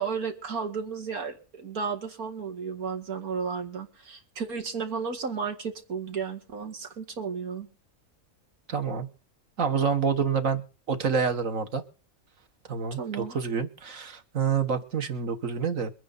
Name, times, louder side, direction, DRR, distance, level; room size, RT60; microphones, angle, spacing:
voice 1, 0.0-7.7 12.9-13.4, right 5 dB, 90° right, 2.5 m, -33 dB
voice 2, 8.7-9.1 9.6-10.6 10.9-11.8 12.7-15.9, right 6 dB, 65° right, 1.8 m, -27 dB
23.0 x 9.7 x 4.1 m
omnidirectional pair, 1.5 m